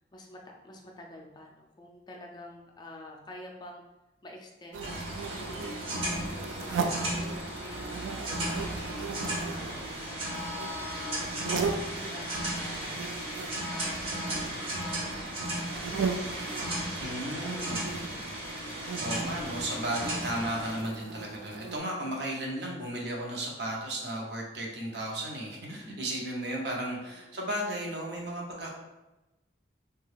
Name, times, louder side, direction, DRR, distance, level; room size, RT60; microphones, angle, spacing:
voice 1, 0.1-3.8 4.2-4.8 5.4-11.6 11.9-13.0 13.7-16.2 16.9-18.0 26.8-27.5, left 1 dB, 25° left, 1 dB, 0.3 m, -49 dB
sound 1, 4.7-21.8, right 5 dB, 90° right, 0.3 m, -38 dB
sound 2, 4.8-20.8, right 1 dB, 30° right, 0.6 m, -35 dB
voice 2, 17.0-17.9 18.6-28.7, right 1 dB, 65° right, -2 dB, 0.7 m, -35 dB
2.8 x 2.2 x 3.2 m, 1.0 s
head